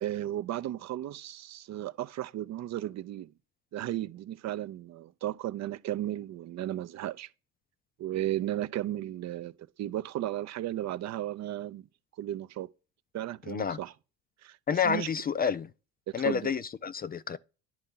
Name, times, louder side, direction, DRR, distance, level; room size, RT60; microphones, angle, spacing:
voice 1, 0.0-3.3 3.7-7.3 8.0-11.8 12.2-12.7 13.1-13.9 14.4-15.1 16.1-16.5, right 13 dB, 50° right, 0.5 m, -35 dB
voice 2, 13.5-13.8 14.7-15.7 16.1-17.4, left 7 dB, 25° left, 0.4 m, -29 dB
10.5 x 4.4 x 3.8 m
supercardioid pair, 70°, 35 cm